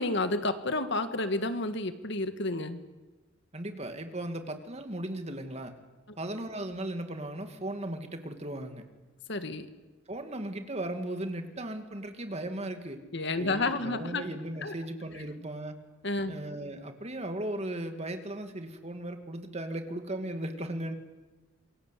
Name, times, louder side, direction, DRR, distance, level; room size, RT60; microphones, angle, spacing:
voice 1, 0.0-2.8 9.3-9.7 13.1-14.2 14.6-14.7 16.0-16.4, left 2 dB, 60° left, 9 dB, 1.7 m, -30 dB
voice 2, 3.5-5.7 6.2-8.8 10.1-13.0 13.4-15.7 16.3-21.0, right 1 dB, 30° right, 6 dB, 2.5 m, -37 dB
27.5 x 23.0 x 8.4 m, 1.2 s
head